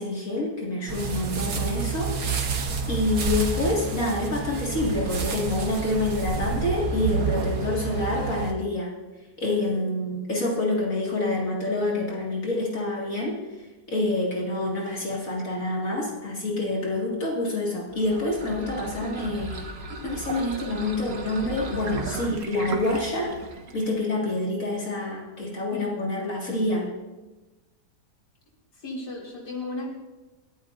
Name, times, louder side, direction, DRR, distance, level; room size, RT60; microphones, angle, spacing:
voice 1, 0.0-8.9 9.4-13.4 13.9-19.7 20.0-23.3 23.7-26.9, left 2 dB, 55° left, -3 dB, 2.7 m, -27 dB
sound 1, 0.9-8.5, right 4 dB, 70° right, 1.8 m, -29 dB
sound 2, 17.9-23.9, right 3 dB, 50° right, 1.6 m, -36 dB
voice 2, 28.7-29.9, left 2 dB, 85° left, -2 dB, 3.5 m, -34 dB
22.5 x 14.0 x 2.7 m, 1.1 s
omnidirectional pair, 1.7 m